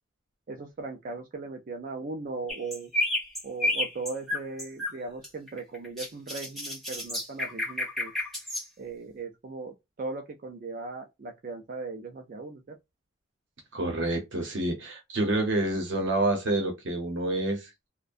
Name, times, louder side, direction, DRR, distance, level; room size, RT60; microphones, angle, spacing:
voice 1, 0.5-2.9 3.4-8.1 8.8-12.8, right 3 dB, 45° right, 0.4 m, -38 dB
sound 1, 2.5-5.0 5.2-8.7, left 1 dB, ahead, 0.9 m, -30 dB
voice 2, 13.7-17.9, right 2 dB, 75° right, 0.8 m, -28 dB
2.5 x 2.1 x 2.4 m
head